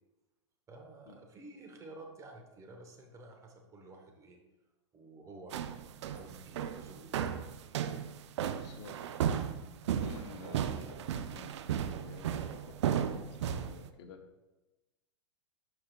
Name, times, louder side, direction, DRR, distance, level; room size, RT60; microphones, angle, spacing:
voice 1, 0.7-4.4 4.9-5.6 6.1-7.5, right 2 dB, 20° right, 2 dB, 1.1 m, -52 dB
sound 1, 5.5-13.9, right 9 dB, 70° right, 0.5 m, -35 dB
voice 2, 8.5-9.0 10.0-14.2, left 4 dB, 60° left, 5 dB, 0.9 m, -51 dB
11.5 x 5.0 x 2.3 m, 1.1 s
hypercardioid pair, 125°, 15 cm